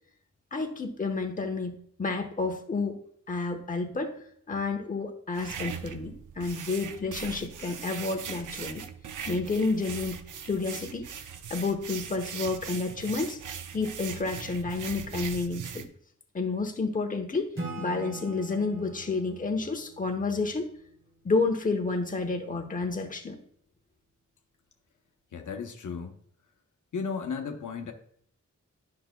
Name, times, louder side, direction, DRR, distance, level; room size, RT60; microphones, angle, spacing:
voice 1, 0.5-3.0 3.3-4.2 4.5-8.8 9.3-10.2 10.4-11.0 11.5-13.4 13.7-15.8 16.3-20.7 21.2-23.4, left 3 dB, 25° left, 4 dB, 0.9 m, -30 dB
sound 1, 5.3-15.9, right 7 dB, 85° right, 0.6 m, -40 dB
Acoustic guitar / Strum, 17.6-21.1, right 2 dB, 40° right, 1.8 m, -42 dB
voice 2, 25.3-26.2 26.9-27.9, left 5 dB, 80° left, 4 dB, 0.8 m, -34 dB
10.0 x 5.7 x 2.2 m, 0.64 s
wide cardioid pair, 90°, 30 cm